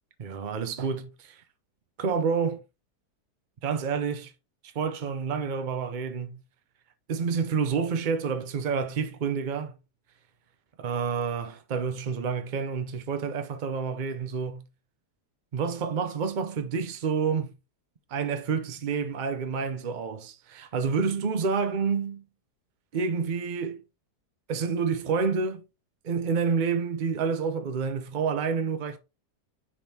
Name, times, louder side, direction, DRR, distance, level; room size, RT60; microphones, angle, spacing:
voice 1, 0.2-1.4 2.0-2.6 3.6-4.3 4.6-6.4 7.1-9.8 10.8-14.6 15.5-17.5 18.1-22.2 22.9-23.8 24.5-25.6 26.0-29.0, right 5 dB, 55° right, 0.5 m, -29 dB
9.6 x 3.7 x 2.8 m
omnidirectional pair, 1.7 m